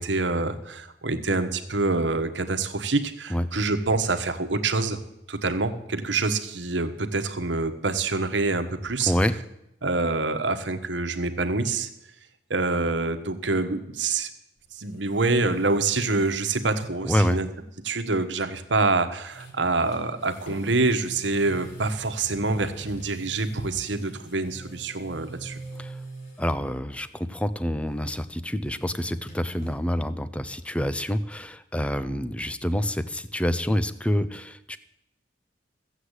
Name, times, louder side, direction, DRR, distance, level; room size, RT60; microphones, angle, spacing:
voice 1, 0.0-5.0 5.3-9.1 9.8-11.9 12.5-14.3 14.7-17.5 17.8-25.6, right 3 dB, 80° right, 8 dB, 1.3 m, -26 dB
sound 1, 14.6-16.5 16.9-17.0 18.7-18.9 19.2-26.6 27.0-27.4 27.7-29.8, right 2 dB, 50° left, 4.2 m, -44 dB
voice 2, 17.0-17.4 25.8-26.0 26.4-34.8, equal, 5° left, 13 dB, 0.6 m, -27 dB
15.0 x 8.0 x 8.1 m, 0.85 s
head